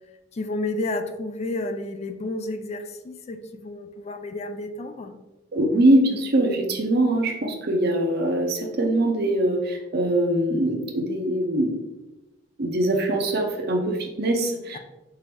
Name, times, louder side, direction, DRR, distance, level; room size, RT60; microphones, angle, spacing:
voice 1, 0.3-5.1 14.7-14.8, left 2 dB, 35° left, 7 dB, 0.3 m, -31 dB
voice 2, 5.5-11.8 12.6-14.8, right 1 dB, 55° right, 2 dB, 0.7 m, -22 dB
4.6 x 2.6 x 3.4 m, 1.0 s
head